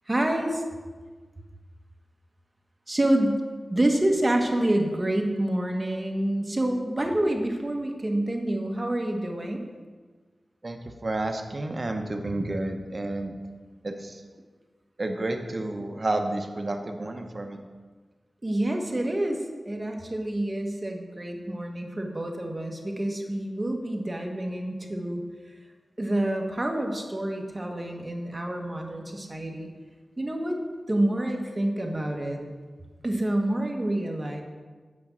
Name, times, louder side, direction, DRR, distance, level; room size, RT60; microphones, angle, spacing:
voice 1, 0.1-0.6 2.9-3.4 3.7-9.6 18.4-19.4 19.7-25.2 26.0-29.7 30.2-30.6 30.9-32.4 33.0-34.4, right 1 dB, 25° right, 2 dB, 1.4 m, -27 dB
voice 2, 10.6-13.3 13.8-14.2 15.0-17.6, right 2 dB, 40° right, 5 dB, 1.0 m, -30 dB
8.6 x 5.3 x 7.3 m, 1.4 s
wide cardioid pair, 80°, 0 cm